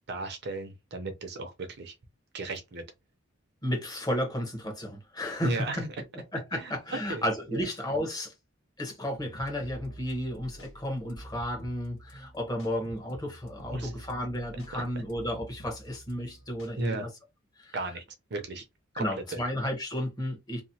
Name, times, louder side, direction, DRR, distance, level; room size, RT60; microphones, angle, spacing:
voice 1, 0.1-1.9 2.3-2.8 5.4-5.9 6.5-6.7 7.1-7.2 7.5-7.6 13.7-13.9 16.8-17.1 17.7-18.0 18.3-18.6 19.0-19.1, right 2 dB, 55° right, 0.6 m, -34 dB
voice 2, 3.6-5.7 6.0-8.3 8.8-17.1 17.5-17.8 18.9-20.6, equal, 20° left, 1.0 m, -33 dB
sound 1, 9.2-16.9, right 1 dB, 85° left, 1.3 m, -48 dB
2.9 x 2.0 x 2.7 m
head